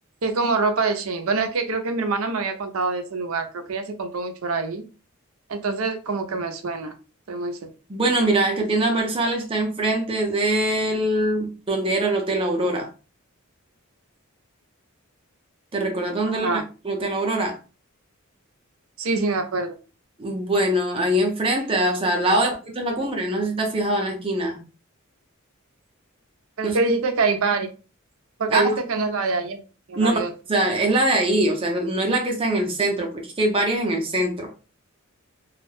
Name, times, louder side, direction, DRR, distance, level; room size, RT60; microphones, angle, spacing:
voice 1, 0.2-4.8 5.5-7.0 7.3-7.7 16.4-16.6 19.0-19.8 22.2-22.4 26.6-27.7 28.4-29.6 29.9-30.3, right 3 dB, 75° right, 0.5 m, -25 dB
voice 2, 7.9-12.9 15.7-17.6 20.2-24.6 26.6-26.8 28.5-28.8 29.9-30.1 30.5-34.5, right 1 dB, 25° right, 0.6 m, -23 dB
2.3 x 2.1 x 3.1 m
head